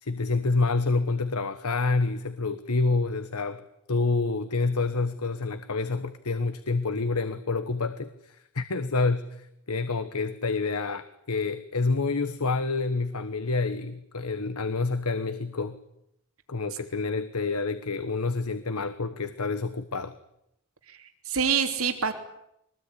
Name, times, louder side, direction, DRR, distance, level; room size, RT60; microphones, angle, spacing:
voice 1, 0.0-3.6 3.9-15.8 16.5-20.1, left 3 dB, 90° left, 11 dB, 1.3 m, -28 dB
voice 2, 20.9-22.1, right 6 dB, 75° right, 6 dB, 3.2 m, -26 dB
23.5 x 20.0 x 10.0 m, 0.80 s
head